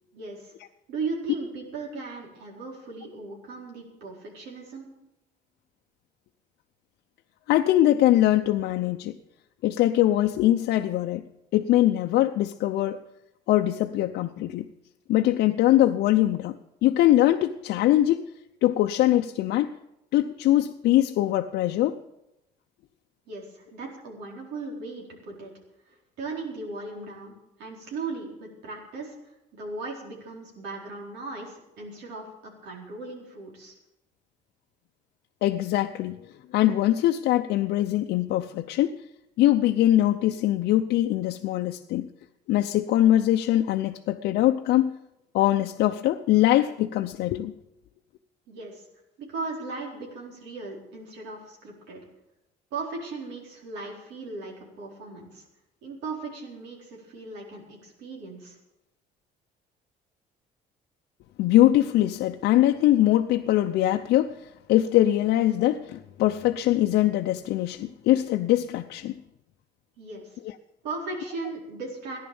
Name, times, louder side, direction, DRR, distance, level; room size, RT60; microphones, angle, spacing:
voice 1, 0.1-0.5 0.9-4.9 23.3-25.5 25.9-33.7 48.5-48.9 49.2-52.0 52.7-55.4 55.8-58.6 70.0-70.4 70.8-72.2, right 3 dB, 90° right, -2 dB, 4.4 m, -37 dB
voice 2, 7.5-9.1 9.6-11.3 11.5-13.0 13.5-14.7 15.1-18.3 18.6-19.8 20.1-22.0 35.4-36.2 36.5-39.0 39.4-42.1 42.5-44.9 45.3-47.5 61.4-69.1, left 13 dB, 75° left, 4 dB, 0.6 m, -22 dB
14.5 x 10.5 x 7.1 m, 0.88 s
cardioid pair, 110°, 17 cm